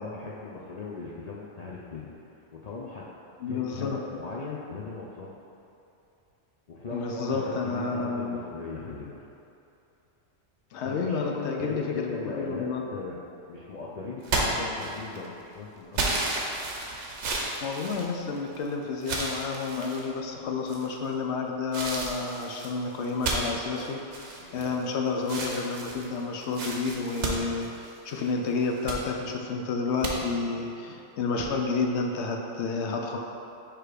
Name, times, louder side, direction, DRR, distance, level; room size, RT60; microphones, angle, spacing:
voice 1, 0.0-3.1 3.5-5.4 6.7-9.2 10.8-13.2 13.5-16.4 24.4-24.6, left 4 dB, 55° left, -5 dB, 0.5 m, -38 dB
voice 2, 3.4-4.0 6.9-8.4 10.7-12.1 12.4-12.8 17.6-24.0 24.5-33.2, left 4 dB, 70° left, 2 dB, 0.9 m, -30 dB
sound 1, 14.2-15.3 15.9-18.6 19.0-20.0 20.7-21.1 21.7-24.9 25.2-28.2 28.6-29.0 30.0-30.1, right 2 dB, 70° right, 1.1 m, -32 dB
6.7 x 3.1 x 4.8 m, 2.8 s
omnidirectional pair, 1.3 m